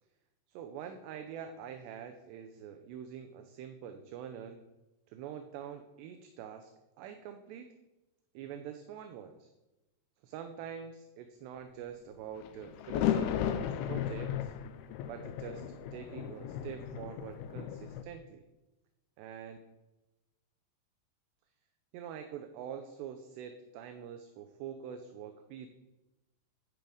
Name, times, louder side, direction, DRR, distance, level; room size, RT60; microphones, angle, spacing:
voice 1, 0.5-4.6 5.1-6.7 7.0-7.7 8.3-9.5 10.2-14.5 15.1-15.6 15.9-18.4 19.2-19.6 21.9-25.7, right 8 dB, 80° right, 7 dB, 2.8 m, -45 dB
sound 1, 12.4-18.0, left 10 dB, 80° left, 2.3 m, -35 dB
12.0 x 10.5 x 5.0 m, 1.0 s
omnidirectional pair, 5.2 m